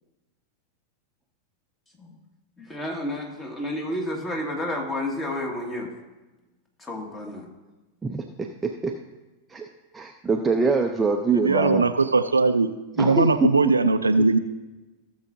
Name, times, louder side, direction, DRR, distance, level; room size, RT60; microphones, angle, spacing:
voice 1, 2.6-5.9 6.8-7.5, left 1 dB, 20° left, 1 dB, 2.0 m, -31 dB
voice 2, 8.0-9.0 9.5-9.7 9.9-11.9 13.0-13.3, right 4 dB, 15° right, 3 dB, 0.6 m, -24 dB
voice 3, 11.4-12.7 13.0-14.4, right 3 dB, 80° right, 10 dB, 0.4 m, -20 dB
16.0 x 7.1 x 2.7 m, 1.1 s
figure-of-eight pair, 90°, 0 cm